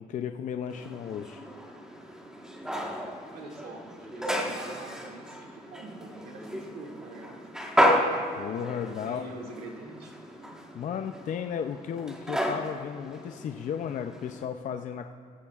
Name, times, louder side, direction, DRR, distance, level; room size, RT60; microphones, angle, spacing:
voice 1, 0.0-1.4 8.4-9.3 10.7-15.1, left 8 dB, 50° left, 6 dB, 0.5 m, -34 dB
sound 1, 0.7-14.5, equal, 5° right, 1.4 m, -32 dB
voice 2, 3.3-7.4 8.9-10.2, right 2 dB, 60° right, 0 dB, 2.2 m, -44 dB
15.5 x 14.5 x 2.4 m, 2.3 s
cardioid pair, 110°, 17 cm